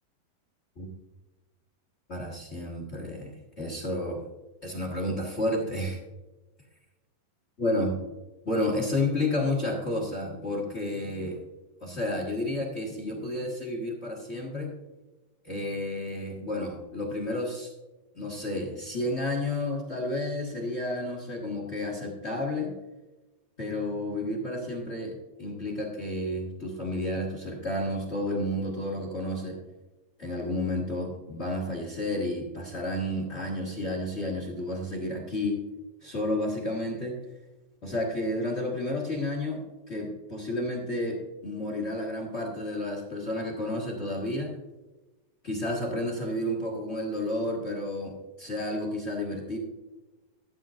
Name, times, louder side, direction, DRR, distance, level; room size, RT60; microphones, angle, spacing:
voice 1, 2.1-3.3 3.6-4.2 4.6-6.0 7.6-8.0 8.4-11.4 11.8-14.7 15.4-17.7 18.1-22.7 23.6-29.6 30.2-35.6 36.0-37.2 37.8-44.5 45.4-49.6, left 1 dB, 50° left, -1 dB, 0.8 m, -31 dB
15.0 x 8.9 x 2.5 m, 1.1 s
omnidirectional pair, 4.0 m